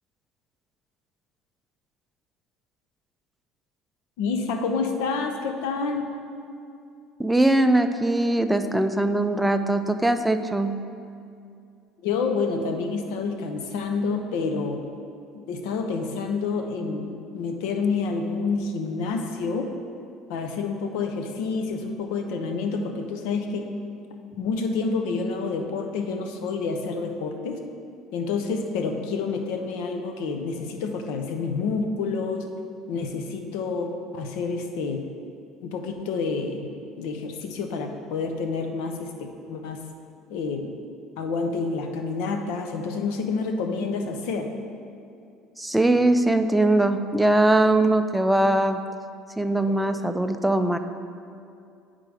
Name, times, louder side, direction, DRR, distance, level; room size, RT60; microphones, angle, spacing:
voice 1, 4.2-6.1 12.0-14.8 15.3-19.7 20.3-23.7 24.4-27.6 28.1-32.5 32.9-35.0 35.6-36.7 37.0-39.8 40.3-40.7 41.2-44.5, left 4 dB, 85° left, 5 dB, 0.7 m, -28 dB
voice 2, 7.2-10.8 45.6-48.8 49.4-50.8, right 1 dB, 5° right, 8 dB, 0.3 m, -21 dB
9.1 x 3.8 x 4.8 m, 2.5 s
cardioid pair, 145°, 0 cm